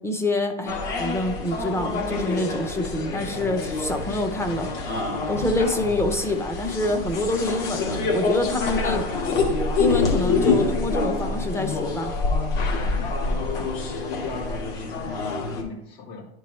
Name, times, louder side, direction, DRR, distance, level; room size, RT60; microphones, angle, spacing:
voice 1, 0.0-9.1 9.8-12.2, left 2 dB, 10° left, 6 dB, 0.7 m, -26 dB
sound 1, 0.7-15.6, left 3 dB, 60° left, 1.6 m, -26 dB
voice 2, 12.8-16.3, left 3 dB, 75° left, -3 dB, 2.6 m, -39 dB
10.5 x 4.6 x 3.1 m, 0.79 s
supercardioid pair, 135°, 31 cm